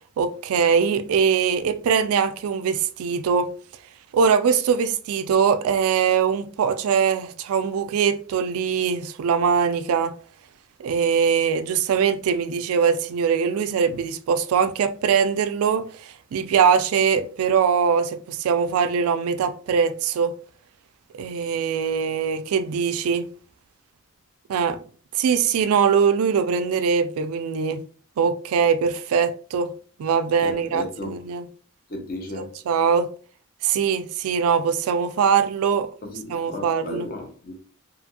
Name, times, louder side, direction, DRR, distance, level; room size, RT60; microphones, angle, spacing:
voice 1, 0.2-3.5 4.1-10.1 10.8-20.3 21.2-23.3 24.5-24.8 25.1-27.8 28.2-29.7 30.0-31.5 32.4-33.1 33.6-35.9 36.3-37.1, right 6 dB, 75° right, 0.3 m, -22 dB
voice 2, 30.4-31.1 31.9-32.5 36.0-37.5, left 1 dB, 40° left, 0.7 m, -34 dB
2.7 x 2.5 x 2.6 m
head